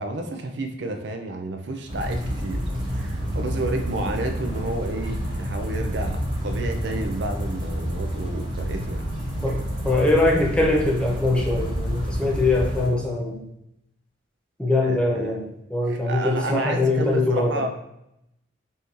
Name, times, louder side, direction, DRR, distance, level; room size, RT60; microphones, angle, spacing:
voice 1, 0.0-2.6 2.9-9.1 14.8-15.3 15.9-17.7, right 2 dB, 65° right, 5 dB, 0.5 m, -30 dB
sound 1, 1.9-12.9, equal, 25° right, 1.0 m, -29 dB
voice 2, 9.4-13.4 14.6-15.5 15.7-17.6, left 2 dB, 5° left, -2 dB, 0.6 m, -22 dB
5.6 x 2.7 x 3.1 m, 0.80 s
head